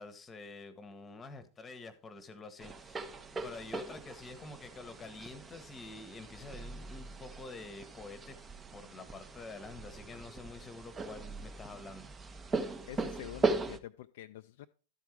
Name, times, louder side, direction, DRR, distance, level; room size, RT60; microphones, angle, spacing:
voice 1, 0.0-3.1 3.4-8.4 8.7-12.1, left 3 dB, 20° left, 13 dB, 1.0 m, -48 dB
sound 1, 2.6-13.8, right 3 dB, 15° right, 0.7 m, -39 dB
voice 2, 12.5-14.7, left 13 dB, 55° left, 9 dB, 0.3 m, -47 dB
12.5 x 4.6 x 4.6 m, 0.39 s
figure-of-eight pair, 90°, 0 cm